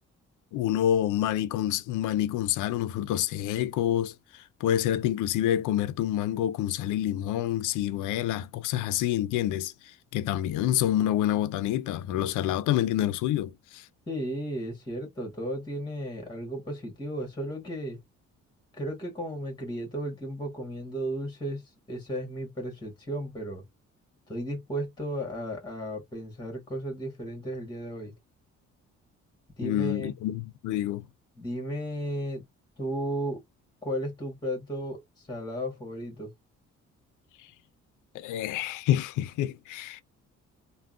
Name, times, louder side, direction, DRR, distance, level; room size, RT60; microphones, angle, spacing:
voice 1, 0.5-9.7 10.1-13.9 29.6-31.1 38.1-40.0, left 12 dB, 90° left, 0.5 m, -27 dB
voice 2, 14.1-18.0 18.7-23.6 24.3-28.1 29.6-30.1 31.4-32.4 32.8-33.4 33.8-36.3, equal, 15° left, 1.5 m, -34 dB
3.4 x 2.2 x 2.4 m
cardioid pair, 90°, 30 cm